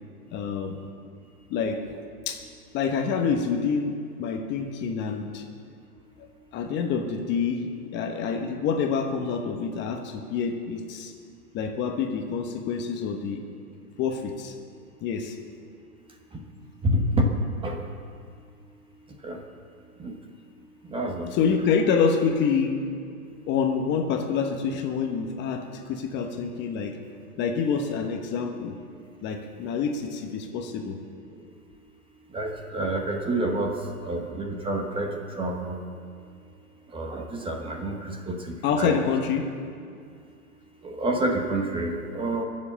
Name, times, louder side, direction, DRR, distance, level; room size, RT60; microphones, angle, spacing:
voice 1, 0.3-0.8 1.5-1.8 2.3-2.4 2.7-5.4 6.5-11.1 11.5-13.5 14.0-14.5 15.0-15.4 21.3-22.8 23.5-27.0 27.4-28.8 29.2-31.0 38.6-39.5, left 6 dB, 25° left, 4 dB, 1.0 m, -27 dB
voice 2, 16.8-17.3 17.6-17.7 19.2-19.4 20.0-20.1 20.9-21.3 32.3-33.8 34.0-35.8 36.9-38.0 38.3-38.4 38.6-39.0 40.8-42.4, right 1 dB, 10° right, 2 dB, 1.1 m, -28 dB
22.5 x 7.6 x 6.9 m, 2.4 s
hypercardioid pair, 135°, 46 cm